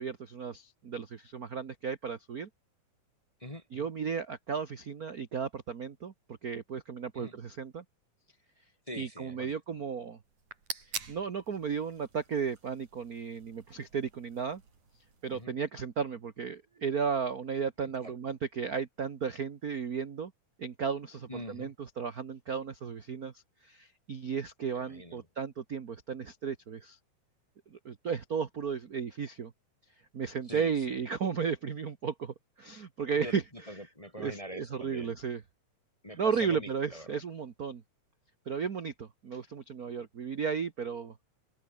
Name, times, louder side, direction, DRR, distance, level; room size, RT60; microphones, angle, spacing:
voice 1, 0.0-2.5 3.7-7.8 8.9-10.2 11.1-14.6 15.2-20.3 20.6-23.3 23.6-27.0 27.7-29.5 30.1-33.4 34.2-35.4 36.2-37.8 38.4-41.2, right 6 dB, 50° right, 1.1 m, -34 dB
voice 2, 3.4-3.9 7.1-7.4 8.9-9.6 15.3-15.5 18.0-18.1 21.3-21.7 24.7-25.2 30.5-31.0 33.2-35.2 36.0-37.1, equal, 15° left, 1.8 m, -44 dB
sound 1, 10.2-15.4, right 5 dB, 65° right, 6.5 m, -46 dB
omnidirectional pair, 3.6 m